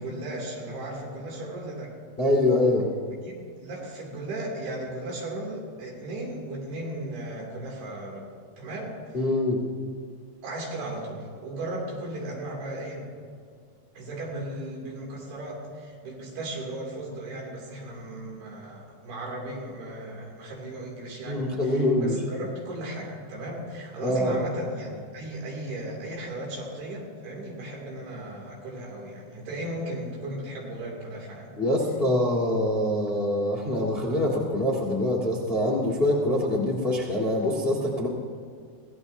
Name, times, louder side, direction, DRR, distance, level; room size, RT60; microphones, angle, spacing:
voice 1, 0.0-2.0 3.2-8.3 8.6-9.0 10.4-13.1 13.9-31.5, right 1 dB, 65° right, -1 dB, 4.6 m, -36 dB
voice 2, 2.2-2.9 9.1-9.6 21.3-22.2 24.0-24.4 31.6-38.1, left 1 dB, 40° left, -2 dB, 0.8 m, -24 dB
24.0 x 16.5 x 2.7 m, 2.1 s
omnidirectional pair, 5.0 m